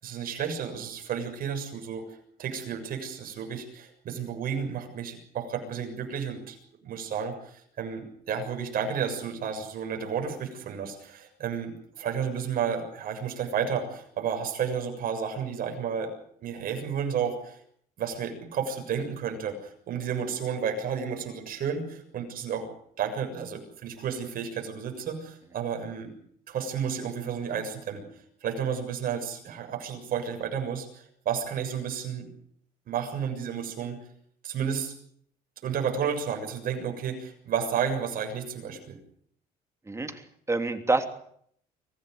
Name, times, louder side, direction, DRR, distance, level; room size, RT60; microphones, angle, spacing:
voice 1, 0.0-2.0 2.4-6.6 6.8-16.1 16.4-17.6 18.0-22.7 23.0-26.1 26.5-28.0 28.4-32.3 32.9-34.0 34.4-34.9 35.6-39.0, right 7 dB, 60° right, 5 dB, 7.0 m, -32 dB
voice 2, 39.9-41.1, right 3 dB, 15° right, 7 dB, 3.1 m, -27 dB
25.0 x 16.0 x 9.5 m, 0.67 s
cardioid pair, 110°, 17 cm